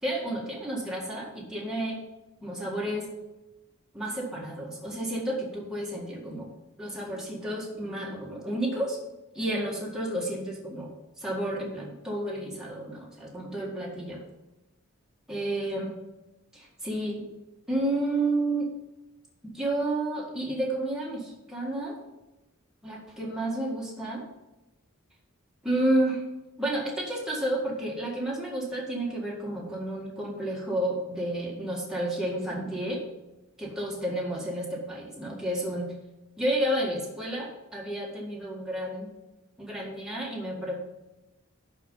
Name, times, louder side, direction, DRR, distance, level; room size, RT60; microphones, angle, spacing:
voice 1, 0.0-2.0 2.4-3.1 3.9-6.5 6.8-9.0 9.3-10.9 11.2-14.2 15.3-16.0 16.5-17.3 17.7-18.7 19.4-22.0 22.8-24.2 25.6-26.2 26.6-33.0 33.6-35.9 36.4-39.1 39.6-40.8, right 1 dB, 5° right, -4 dB, 1.8 m, -31 dB
10.5 x 4.4 x 5.4 m, 0.99 s
head